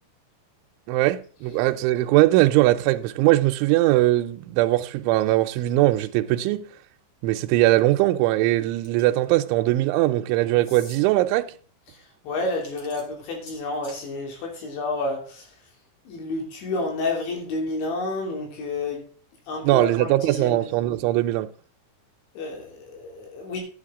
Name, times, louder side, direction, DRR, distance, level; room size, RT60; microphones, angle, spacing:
voice 1, 0.9-6.6 7.2-11.5 19.6-21.5, right 16 dB, 85° right, 3.0 m, -20 dB
sound 1, 8.8-9.2 10.6-11.0 12.5-14.1, left 1 dB, 35° left, 1.9 m, -46 dB
voice 2, 11.9-15.5 16.1-19.1 19.5-20.7 22.4-23.6, left 2 dB, 75° left, 5.2 m, -30 dB
11.0 x 9.7 x 3.7 m
omnidirectional pair, 5.4 m